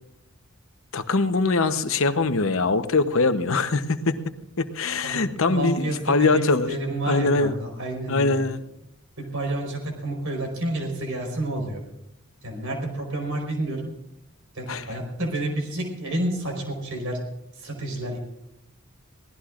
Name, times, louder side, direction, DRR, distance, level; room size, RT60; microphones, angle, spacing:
voice 1, 0.9-4.2 4.6-6.7 7.1-7.5 8.1-8.6 14.7-14.9, left 3 dB, 65° left, 10 dB, 0.9 m, -22 dB
voice 2, 5.5-8.4 9.2-11.8 12.4-13.9 14.5-17.2 17.5-18.2, right 1 dB, 70° right, 2 dB, 4.7 m, -29 dB
23.0 x 17.0 x 2.5 m, 0.82 s
head